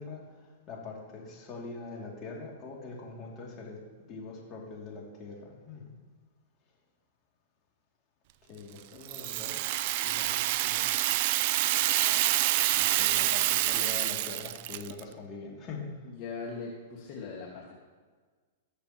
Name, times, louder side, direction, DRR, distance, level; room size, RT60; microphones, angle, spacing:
voice 1, 0.0-3.8 4.1-5.8 8.5-10.8 12.7-15.9, left 4 dB, 30° left, -2 dB, 2.7 m, -43 dB
Rattle (instrument), 9.0-15.0, right 15 dB, 50° right, 0.3 m, -27 dB
voice 2, 16.0-17.7, left 4 dB, 45° left, -3 dB, 1.9 m, -40 dB
18.5 x 6.7 x 3.1 m, 1.4 s
hypercardioid pair, 120°, 0 cm